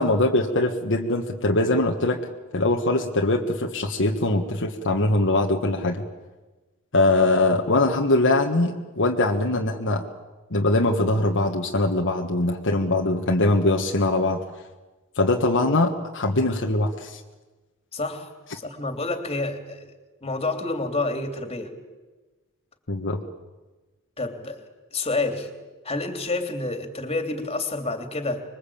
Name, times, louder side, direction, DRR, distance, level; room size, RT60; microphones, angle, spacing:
voice 1, 0.0-2.2 2.5-6.0 6.9-10.0 10.5-14.4 15.1-17.2 22.9-23.2, left 2 dB, 60° left, 2 dB, 1.6 m, -22 dB
voice 2, 17.9-19.9 20.2-21.7 24.2-24.6 24.9-25.5 25.8-28.4, left 2 dB, 30° left, 6 dB, 3.0 m, -29 dB
25.5 x 22.5 x 8.7 m, 1.2 s
head